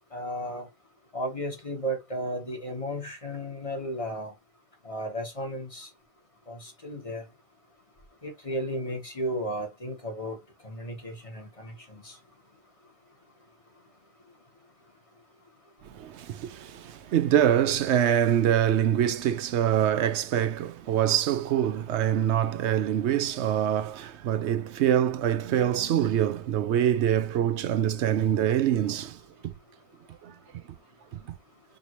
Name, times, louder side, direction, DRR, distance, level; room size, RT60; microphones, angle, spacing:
voice 1, 0.1-0.7 1.1-4.3 4.8-5.9 6.5-7.2 8.2-10.4 10.6-12.2, equal, 30° left, 1.4 m, -34 dB
voice 2, 15.9-29.2 29.4-29.5 30.2-30.3, right 10 dB, 85° right, 0.9 m, -25 dB
5.2 x 2.7 x 3.0 m
omnidirectional pair, 1.1 m